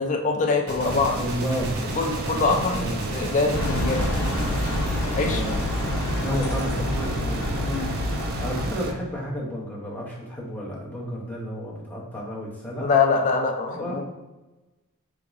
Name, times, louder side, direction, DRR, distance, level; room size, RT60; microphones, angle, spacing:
voice 1, 0.0-1.2 2.0-4.1 5.2-5.4 7.6-8.0 12.8-14.0, left 4 dB, 35° left, 4 dB, 0.4 m, -24 dB
Gunshot gunfire, 0.7-5.9, right 1 dB, 65° right, 0.9 m, -35 dB
sound 1, 0.8-8.9, right 3 dB, 45° right, 0.3 m, -32 dB
voice 2, 1.1-1.8 2.7-3.1 5.2-5.7 6.2-7.5 8.4-12.9 13.7-14.0, equal, 10° left, -6 dB, 0.8 m, -31 dB
sound 2, 3.5-8.7, left 2 dB, 70° left, 0.7 m, -27 dB
3.6 x 3.0 x 2.5 m, 1.1 s
head